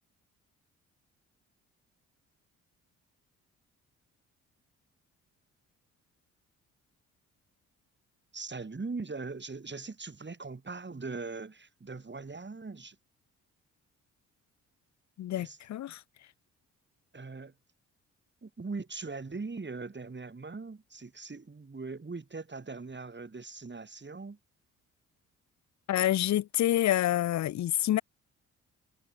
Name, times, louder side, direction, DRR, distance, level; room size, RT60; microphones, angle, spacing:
voice 1, 8.3-13.0 15.4-15.6 17.1-17.5 18.4-24.4, right 4 dB, 30° right, 6.1 m, -40 dB
voice 2, 15.2-16.0 25.9-28.0, left 13 dB, 50° left, 0.7 m, -27 dB
hypercardioid pair, 45°, 36 cm